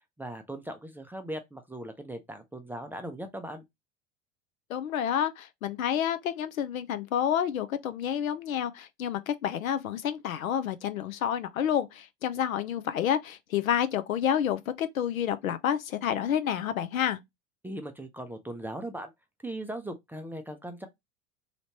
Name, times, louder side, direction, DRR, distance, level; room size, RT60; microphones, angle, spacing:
voice 1, 0.2-3.6 17.6-19.1 19.4-20.9, right 1 dB, 5° right, 0.4 m, -39 dB
voice 2, 4.7-17.2, left 9 dB, 85° left, 0.5 m, -29 dB
3.1 x 2.8 x 2.8 m
hypercardioid pair, 80°, 40 cm